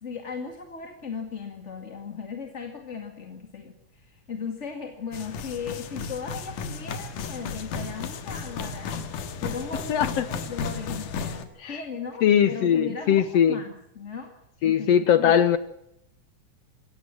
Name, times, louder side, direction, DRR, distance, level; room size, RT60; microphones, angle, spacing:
voice 1, 0.0-9.1 9.4-14.3 14.6-15.4, left 5 dB, 25° left, 4 dB, 2.0 m, -37 dB
sound 1, 5.1-11.4, left 5 dB, 85° left, 3.1 m, -34 dB
voice 2, 9.9-10.2 11.6-11.7 12.2-13.6 14.6-15.6, left 9 dB, 65° left, 13 dB, 1.7 m, -20 dB
23.5 x 17.5 x 7.5 m, 0.77 s
omnidirectional pair, 3.6 m